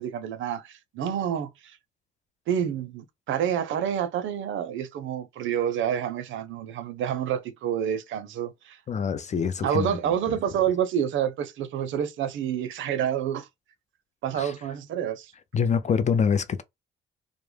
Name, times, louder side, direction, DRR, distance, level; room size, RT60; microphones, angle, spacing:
voice 1, 0.0-1.8 2.5-8.8 9.6-13.5 14.2-15.3, right 9 dB, 75° right, 0.5 m, -28 dB
voice 2, 8.9-10.0 14.3-14.5 15.5-16.6, left 6 dB, 35° left, 0.4 m, -25 dB
2.1 x 2.0 x 3.2 m
cardioid pair, 90°, 20 cm